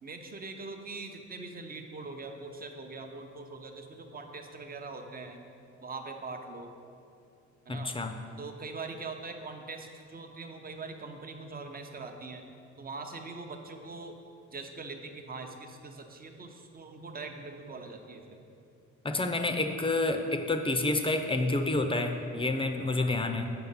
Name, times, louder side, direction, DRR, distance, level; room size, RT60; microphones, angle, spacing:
voice 1, 0.0-5.4 5.8-6.7 7.7-8.0 8.4-12.4 12.8-14.2 14.5-18.4 23.0-23.2, right 3 dB, 30° right, 5 dB, 0.8 m, -42 dB
voice 2, 7.7-8.2 19.0-23.5, left 2 dB, 15° left, 6 dB, 0.6 m, -29 dB
7.9 x 5.2 x 5.6 m, 2.6 s
cardioid pair, 90°, 30 cm